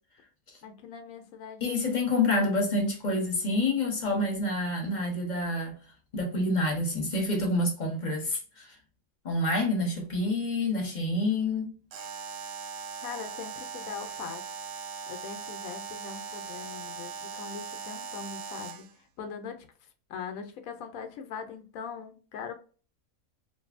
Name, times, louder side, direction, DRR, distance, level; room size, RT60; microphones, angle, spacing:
voice 1, 0.6-2.2 13.0-14.6 15.1-18.9 19.2-19.7 20.1-22.5, left 6 dB, 80° left, 1.0 m, -41 dB
voice 2, 1.6-5.8 6.1-8.7 9.2-11.7, left 2 dB, 40° left, 0.7 m, -28 dB
Alarm, 11.9-18.9, right 6 dB, 85° right, 1.0 m, -40 dB
2.6 x 2.6 x 2.4 m
omnidirectional pair, 1.5 m